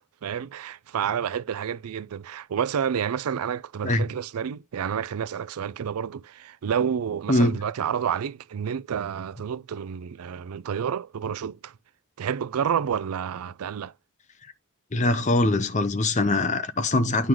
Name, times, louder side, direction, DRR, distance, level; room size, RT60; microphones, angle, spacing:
voice 1, 0.2-11.8 12.2-13.9, right 8 dB, 90° right, 0.4 m, -29 dB
voice 2, 7.3-7.6 14.9-17.3, left 2 dB, 35° left, 0.8 m, -22 dB
9.2 x 4.7 x 3.8 m
head